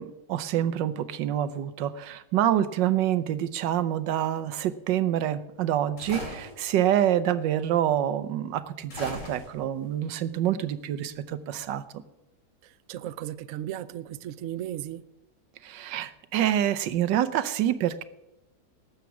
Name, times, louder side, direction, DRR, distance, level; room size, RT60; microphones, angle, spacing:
voice 1, 0.0-11.8 15.6-18.0, right 11 dB, 90° right, 1.4 m, -27 dB
sound 1, 6.0-6.6 8.9-9.8, left 2 dB, 85° left, 3.9 m, -41 dB
sound 2, 6.1-6.7 9.0-9.5, equal, 15° left, 6.4 m, -39 dB
voice 2, 12.6-15.0, right 12 dB, 65° right, 0.8 m, -36 dB
19.0 x 8.2 x 5.9 m
omnidirectional pair, 1.9 m